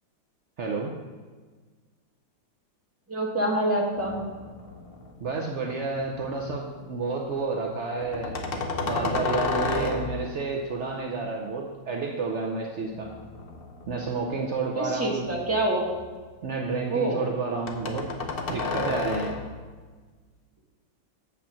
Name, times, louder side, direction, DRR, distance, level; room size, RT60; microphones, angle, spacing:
voice 1, 0.6-0.9 5.2-13.1 13.9-15.2 16.4-18.1 18.5-19.3, right 3 dB, 75° right, 0 dB, 0.6 m, -30 dB
voice 2, 3.1-4.2 14.7-15.8 16.9-17.2, right 1 dB, 10° right, -2 dB, 1.0 m, -26 dB
sound 1, 4.0-5.3 5.7-6.4 8.0-10.4 12.9-14.4 15.0-16.2 17.7-19.6, left 3 dB, 85° left, 0.5 m, -32 dB
7.4 x 5.7 x 5.7 m, 1.4 s
omnidirectional pair, 2.2 m